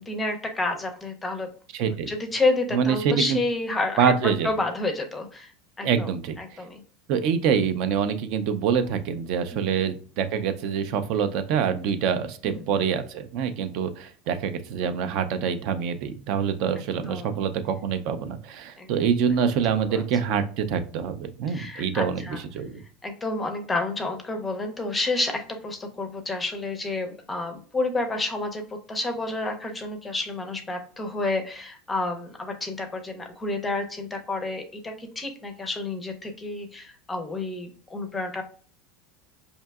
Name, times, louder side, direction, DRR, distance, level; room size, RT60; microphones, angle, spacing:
voice 1, 0.1-1.5 2.1-4.1 4.4-5.5 5.8-6.1 6.4-6.8 9.5-9.7 12.4-12.6 17.1-17.4 18.8-18.9 19.9-20.0 21.5-22.4 23.0-38.4, left 2 dB, 10° left, 5 dB, 0.5 m, -30 dB
voice 2, 1.7-2.1 2.7-3.4 4.0-4.5 5.8-6.4 7.1-22.2 22.5-22.7, right 7 dB, 50° right, 10 dB, 0.4 m, -25 dB
5.6 x 2.7 x 2.3 m, 0.42 s
supercardioid pair, 160°, 0 cm